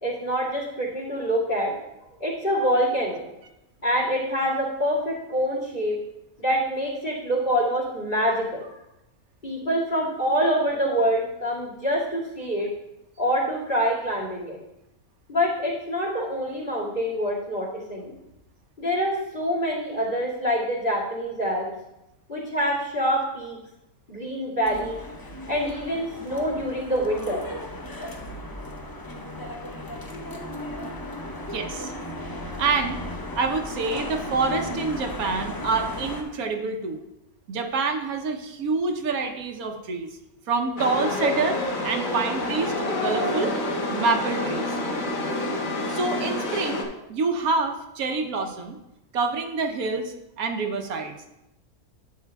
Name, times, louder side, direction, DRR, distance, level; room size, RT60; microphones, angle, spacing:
voice 1, 0.0-1.7 2.2-3.2 3.8-6.0 6.4-8.7 9.4-12.7 13.2-14.6 15.3-18.1 18.8-21.7 22.3-23.6 24.1-25.0 25.5-27.4, equal, 35° left, -2 dB, 2.4 m, -25 dB
sound 1, 24.6-36.2, left 1 dB, 20° left, 0.6 m, -36 dB
voice 2, 31.5-31.9 32.6-33.0 33.4-37.0 37.5-40.1 40.5-43.5 43.9-44.8 45.9-48.8 49.1-51.2, right 4 dB, 85° right, 4 dB, 1.3 m, -27 dB
Chatter / Subway metro underground, 40.8-46.8, left 2 dB, 70° left, 1.5 m, -28 dB
11.5 x 7.5 x 2.3 m, 0.89 s
omnidirectional pair, 1.5 m